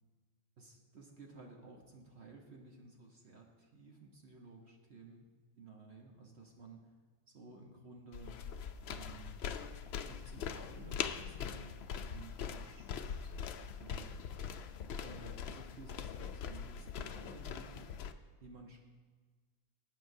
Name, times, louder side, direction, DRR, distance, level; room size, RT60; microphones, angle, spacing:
voice 1, 0.6-5.3 5.6-6.9 7.3-8.4 8.9-9.4 10.1-13.3 13.8-14.2 15.0-17.9 18.4-18.8, right 3 dB, 55° right, 0 dB, 1.3 m, -54 dB
sound 1, 8.1-18.1, left 7 dB, 65° left, 0.7 m, -42 dB
17.5 x 8.7 x 2.7 m, 1.5 s
omnidirectional pair, 1.4 m